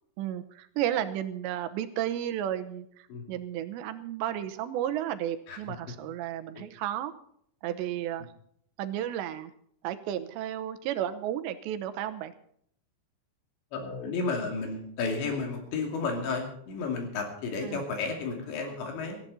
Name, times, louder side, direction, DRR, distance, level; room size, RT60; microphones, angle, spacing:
voice 1, 0.2-7.1 7.6-8.3 8.8-9.5 9.8-12.3 17.6-17.8, right 11 dB, 85° right, 9 dB, 3.1 m, -33 dB
voice 2, 13.7-19.2, left 4 dB, 80° left, 2 dB, 5.0 m, -32 dB
18.0 x 15.0 x 4.2 m, 0.65 s
omnidirectional pair, 5.1 m